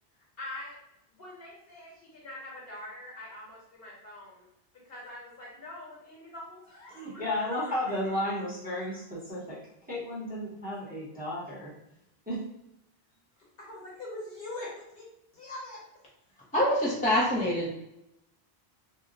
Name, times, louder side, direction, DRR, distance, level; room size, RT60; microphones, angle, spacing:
voice 1, 0.4-0.8 1.1-4.4 4.8-8.4 13.6-15.1 15.3-15.8, left 1 dB, 60° left, -5 dB, 1.3 m, -43 dB
voice 2, 6.9-9.6 9.9-11.7 12.3-12.4, left 1 dB, 10° right, -7 dB, 0.8 m, -33 dB
voice 3, 16.5-17.7, left 1 dB, 10° left, -5 dB, 0.5 m, -25 dB
2.7 x 2.0 x 3.7 m, 0.82 s
omnidirectional pair, 1.1 m